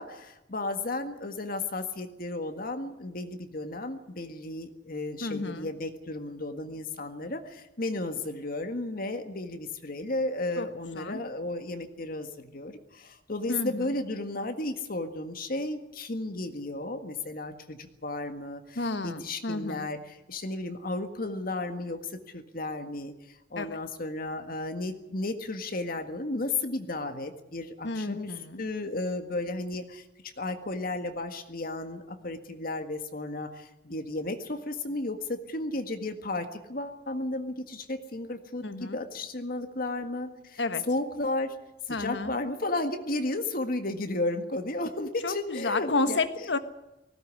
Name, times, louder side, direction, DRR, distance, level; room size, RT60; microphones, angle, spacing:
voice 1, 0.0-40.6 40.9-41.6 41.9-46.2, left 2 dB, 50° left, 7 dB, 1.8 m, -34 dB
voice 2, 5.2-5.7 10.6-10.7 10.9-11.2 13.5-13.9 18.7-19.9 23.6-23.8 27.8-28.6 38.6-39.0 40.6-40.8 41.9-42.3 45.2-46.6, left 3 dB, 70° left, 11 dB, 1.5 m, -31 dB
19.0 x 17.0 x 9.6 m, 0.92 s
head